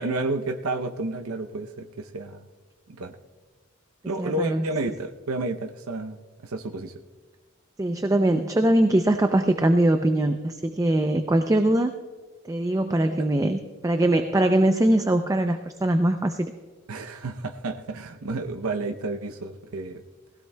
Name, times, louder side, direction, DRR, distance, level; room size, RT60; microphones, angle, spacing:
voice 1, 0.0-2.5 2.9-3.1 4.1-6.9 13.2-13.3 16.9-20.0, right 2 dB, 90° right, 6 dB, 0.7 m, -31 dB
voice 2, 4.2-4.6 7.8-11.9 12.4-16.5, right 1 dB, 15° right, 7 dB, 0.4 m, -22 dB
20.5 x 16.0 x 2.2 m, 1.4 s
head